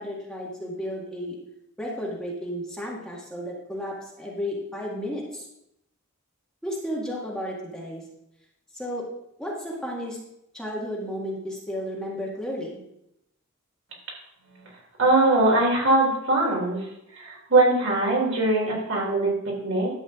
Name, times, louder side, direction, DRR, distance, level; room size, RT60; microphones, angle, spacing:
voice 1, 0.0-1.4 1.8-5.4 6.6-8.0 8.7-9.1 9.4-10.2 10.5-12.8, equal, 5° left, -4 dB, 1.8 m, -33 dB
voice 2, 15.0-16.9 17.1-19.9, right 2 dB, 65° right, -2 dB, 3.6 m, -21 dB
12.0 x 8.1 x 3.7 m, 0.82 s
head